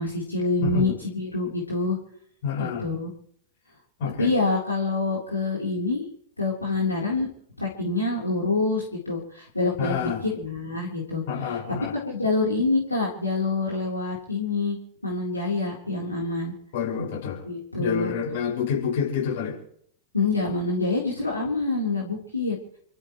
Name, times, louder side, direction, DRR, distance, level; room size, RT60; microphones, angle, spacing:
voice 1, 0.0-2.0 2.6-3.1 4.2-6.0 6.4-7.3 7.6-11.5 12.1-14.8 15.0-16.5 17.4-18.1 20.1-22.6, left 3 dB, 85° left, -3 dB, 3.8 m, -26 dB
voice 2, 0.6-1.0 2.4-2.9 4.0-4.3 9.8-10.2 11.3-11.9 16.7-17.4 17.8-19.6, left 7 dB, 55° left, -1 dB, 5.9 m, -28 dB
29.5 x 14.0 x 3.2 m, 0.63 s
figure-of-eight pair, 90°, 0 cm